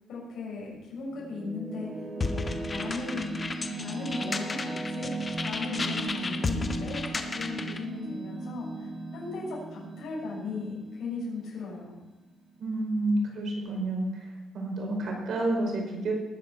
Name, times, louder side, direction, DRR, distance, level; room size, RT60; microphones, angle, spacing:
voice 1, 0.1-3.4 3.7-5.1 5.4-11.9, left 4 dB, 65° left, -4 dB, 6.4 m, -37 dB
sound 1, 0.7-12.1, right 2 dB, 10° right, 1.4 m, -37 dB
sound 2, 2.2-7.8, left 3 dB, 20° left, 1.0 m, -34 dB
voice 2, 12.6-14.1 14.5-16.1, right 2 dB, 50° right, 0 dB, 5.2 m, -29 dB
19.5 x 9.9 x 5.9 m, 1.1 s
cardioid pair, 170°, 0 cm